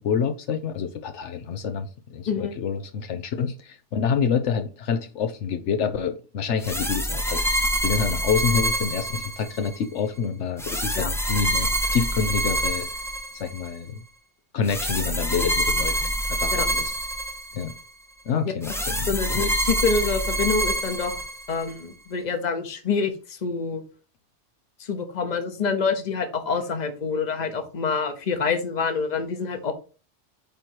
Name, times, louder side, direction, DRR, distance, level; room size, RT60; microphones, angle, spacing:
voice 1, 0.0-7.4 7.8-12.9 13.3-14.0 14.5-16.9 17.5-17.7 18.3-19.4, left 6 dB, 80° left, 1.1 m, -27 dB
sound 1, 6.6-9.8 10.6-13.7 14.6-17.8 18.6-21.7, right 1 dB, 5° left, 0.7 m, -26 dB
voice 2, 19.1-21.2 21.5-23.8 24.8-29.7, left 5 dB, 40° left, 1.1 m, -26 dB
8.6 x 3.0 x 4.6 m
omnidirectional pair, 1.2 m